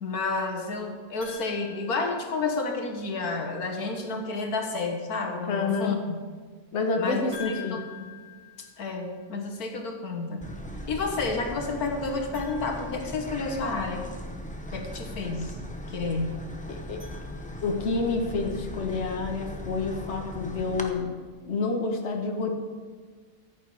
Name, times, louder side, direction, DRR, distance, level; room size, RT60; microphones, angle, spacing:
voice 1, 0.0-6.2 7.0-8.1 8.8-10.4 10.9-14.1 14.7-15.6 15.9-16.5, left 3 dB, 90° left, 3 dB, 1.9 m, -30 dB
sound 1, 1.2-2.9 7.3-9.3 12.2-13.8 16.7-18.0, left 8 dB, 90° right, 4.9 m, -47 dB
voice 2, 5.5-6.0 6.7-7.8 16.7-17.0 17.6-21.1 21.4-22.6, left 3 dB, 50° left, 2 dB, 1.5 m, -28 dB
sound 2, 10.4-20.9, equal, 5° left, 0.7 m, -39 dB
15.0 x 8.4 x 4.8 m, 1.5 s
omnidirectional pair, 1.5 m